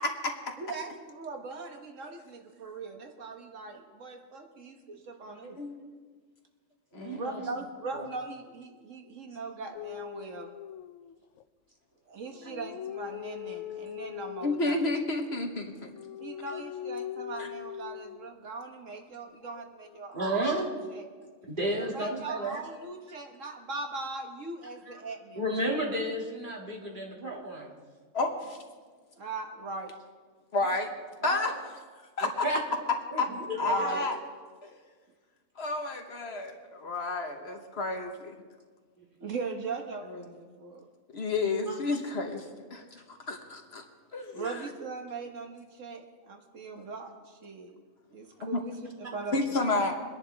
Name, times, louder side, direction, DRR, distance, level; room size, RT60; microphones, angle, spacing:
voice 1, 0.0-0.5 5.5-5.9 6.9-7.5 14.4-15.9 17.4-17.5 28.1-28.6 30.5-30.9 31.2-31.5 32.2-32.5 33.2-33.3 33.6-34.1 34.6-34.7 35.6-38.3 40.1-40.2 41.1-42.4 42.7-43.8 44.1-44.7 48.4-48.6 49.3-50.0, left 2 dB, 55° left, 4 dB, 1.4 m, -31 dB
voice 2, 0.6-5.6 7.1-10.5 12.1-14.9 16.2-20.4 20.9-21.1 21.8-25.4 29.2-29.9 33.6-34.1 39.2-40.9 44.3-47.8 48.1-49.4 49.8-49.9, right 3 dB, 70° right, 4 dB, 1.5 m, -40 dB
voice 3, 6.9-7.4 8.0-8.1 20.1-20.7 21.5-22.6 24.9-25.0 25.4-27.8 30.5-30.7 31.2-31.6 32.2-32.6 33.1-33.9 41.7-41.8, right 1 dB, 40° right, -2 dB, 2.6 m, -32 dB
sound 1, 9.7-11.4 12.2-14.9 15.7-18.3 19.4-20.0, left 11 dB, 75° left, 0.9 m, -41 dB
23.5 x 10.5 x 3.4 m, 1.5 s
omnidirectional pair, 1.3 m